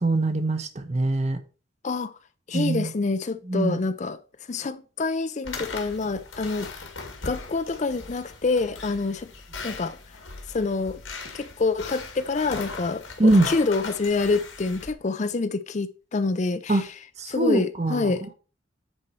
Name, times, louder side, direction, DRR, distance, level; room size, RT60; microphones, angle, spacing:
voice 1, 0.0-1.4 2.5-2.9 3.5-3.8 13.2-13.5 16.7-16.8 17.2-18.1, right 2 dB, 35° right, 0.9 m, -22 dB
voice 2, 2.5-4.2 4.5-6.7 7.2-9.3 9.6-10.0 10.5-11.0 11.3-16.9 17.3-18.3, left 3 dB, 35° left, 0.4 m, -27 dB
sound 1, 5.4-14.9, left 4 dB, 80° left, 2.1 m, -39 dB
9.7 x 4.5 x 4.3 m
head